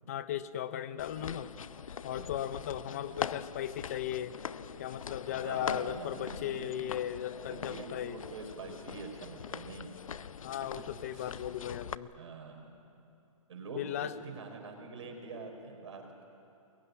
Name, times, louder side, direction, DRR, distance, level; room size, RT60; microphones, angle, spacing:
voice 1, 0.1-1.5 2.0-4.4 4.8-8.2 10.4-12.1 13.8-14.1, left 11 dB, 25° left, 14 dB, 0.7 m, -37 dB
sound 1, 1.0-11.9, left 7 dB, 65° left, 0.7 m, -42 dB
voice 2, 1.9-2.3 5.4-6.8 7.5-9.9 11.1-11.3 12.1-12.8 13.5-16.2, right 4 dB, 55° right, 3 dB, 5.2 m, -45 dB
24.0 x 22.5 x 9.7 m, 2.7 s
hypercardioid pair, 165°, 18 cm